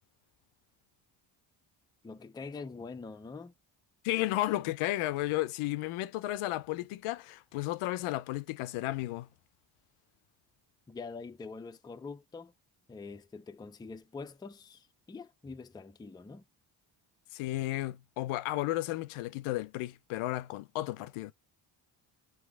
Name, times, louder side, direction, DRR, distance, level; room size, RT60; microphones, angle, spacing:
voice 1, 2.0-3.5 10.9-12.5 12.9-16.4, left 4 dB, 10° left, 0.3 m, -44 dB
voice 2, 4.0-9.3 17.3-21.3, left 16 dB, 80° left, 0.5 m, -33 dB
3.4 x 3.0 x 4.6 m
cardioid pair, 70°, 49 cm